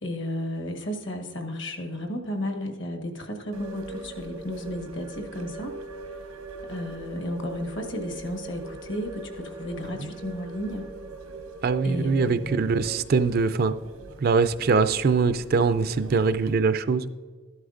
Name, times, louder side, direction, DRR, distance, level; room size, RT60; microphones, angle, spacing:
voice 1, 0.0-5.7 6.7-10.9 11.8-12.8, left 1 dB, 55° left, 3 dB, 1.4 m, -33 dB
sound 1, 3.5-16.5, right 3 dB, 90° right, 0.9 m, -41 dB
voice 2, 11.6-13.7 14.2-17.1, right 4 dB, 45° right, 12 dB, 0.4 m, -23 dB
13.0 x 11.0 x 2.5 m, 1.5 s
head